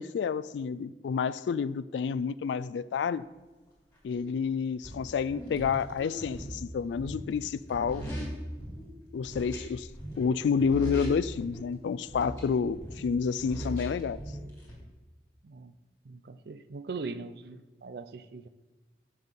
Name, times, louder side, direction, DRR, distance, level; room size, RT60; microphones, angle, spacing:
voice 1, 0.0-3.2 4.0-8.1 9.1-9.9 10.2-14.2, left 6 dB, 90° left, 0.3 m, -29 dB
sound 1, 4.1-4.2 4.8-8.9 9.2-10.3 10.6-11.7 12.1-14.7, equal, 15° left, 3.0 m, -39 dB
voice 2, 16.1-18.5, right 4 dB, 65° right, 0.5 m, -40 dB
7.5 x 5.6 x 7.3 m
head